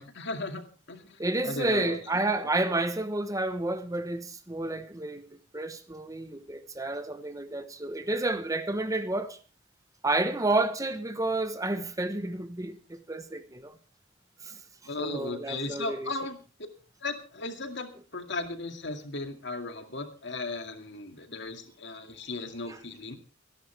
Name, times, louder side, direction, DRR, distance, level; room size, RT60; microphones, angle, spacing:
voice 1, 0.0-2.0 2.3-2.4 14.8-16.4 17.0-23.2, left 2 dB, 60° left, 2.3 m, -36 dB
voice 2, 1.2-5.3 5.5-9.4 10.0-13.7 14.4-14.6 15.0-16.1 22.7-22.8, right 2 dB, 15° right, 1.0 m, -30 dB
25.5 x 11.0 x 3.4 m
head